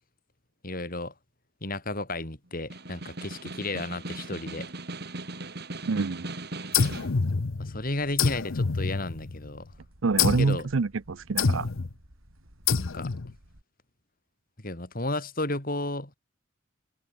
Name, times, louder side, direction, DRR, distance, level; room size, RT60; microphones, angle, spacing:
voice 1, 0.6-1.1 1.6-4.7 7.6-9.7 10.2-10.7 12.8-13.1 14.6-16.1, left 2 dB, 45° left, 4.4 m, -33 dB
Snare drum, 2.6-7.2, right 2 dB, 50° right, 3.2 m, -38 dB
voice 2, 5.8-6.3 10.0-11.7, right 4 dB, 75° right, 0.6 m, -26 dB
sound 1, 6.7-7.8 8.2-9.5 10.2-10.6 11.4-11.9 12.7-13.3, left 5 dB, 75° left, 0.8 m, -26 dB
sound 2, 7.3-13.6, equal, 90° right, 5.7 m, -55 dB
head